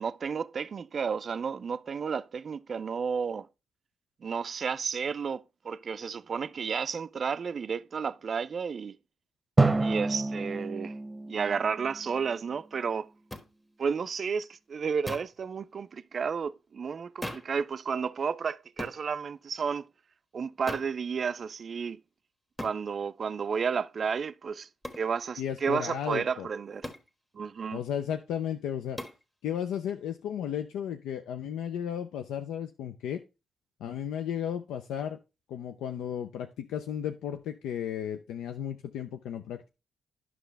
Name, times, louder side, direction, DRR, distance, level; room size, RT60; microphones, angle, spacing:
voice 1, 0.0-3.5 4.2-9.0 9.8-10.9 11.3-13.1 13.8-19.9 20.3-22.0 22.6-24.7 25.0-26.9 27.3-27.8, right 6 dB, 50° right, 0.4 m, -32 dB
Drum, 9.6-12.5, right 3 dB, 25° right, 0.8 m, -28 dB
sound 1, 13.3-13.5 15.1-15.4 17.2-17.6 18.8-19.0 20.7-21.0 22.6-22.8 24.8-25.1 26.8-27.1 29.0-29.2, left 1 dB, 15° left, 1.3 m, -38 dB
voice 2, 25.4-26.5 27.7-29.0 29.4-33.2 33.8-35.2 35.5-39.7, left 9 dB, 85° left, 0.5 m, -34 dB
9.4 x 6.1 x 3.3 m
supercardioid pair, 60°, 0 cm